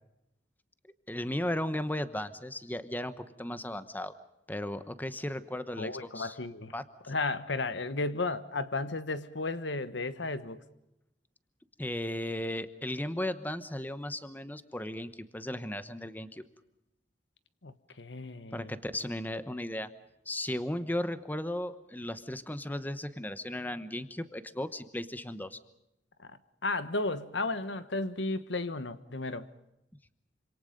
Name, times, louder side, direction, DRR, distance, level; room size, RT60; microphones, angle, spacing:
voice 1, 1.1-4.1 4.5-6.4 6.7-6.8 11.8-16.4 18.5-19.9 20.3-25.6, left 1 dB, 10° left, 1.0 m, -36 dB
voice 2, 5.8-6.7 7.1-10.6 17.6-18.7 26.2-29.5, left 3 dB, 85° left, 1.3 m, -34 dB
27.0 x 26.5 x 5.3 m
head